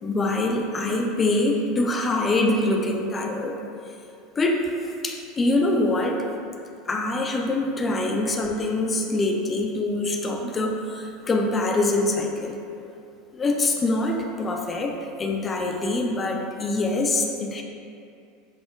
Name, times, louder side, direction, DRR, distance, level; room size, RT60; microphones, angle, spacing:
voice 1, 0.0-3.6 4.4-4.6 5.0-6.3 6.9-12.6 13.3-17.6, left 2 dB, 25° left, 2 dB, 0.4 m, -24 dB
5.5 x 2.0 x 2.2 m, 2.5 s
figure-of-eight pair, 80°, 0 cm